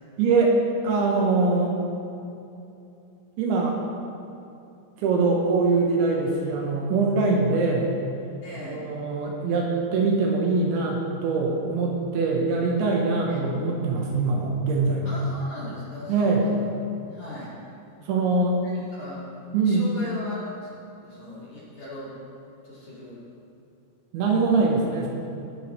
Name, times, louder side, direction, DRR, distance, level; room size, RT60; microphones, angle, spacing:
voice 1, 0.2-1.7 3.4-3.8 5.0-7.9 8.6-15.1 16.1-16.4 18.1-18.6 19.5-19.9 24.1-25.1, right 3 dB, 75° right, -1 dB, 3.4 m, -23 dB
voice 2, 8.4-8.8 13.2-13.4 15.0-16.4 17.0-17.5 18.6-19.2 19.6-20.7 21.0-22.1 22.6-23.2, left 1 dB, 40° left, -8 dB, 3.3 m, -38 dB
18.5 x 12.0 x 3.4 m, 2.7 s
omnidirectional pair, 5.9 m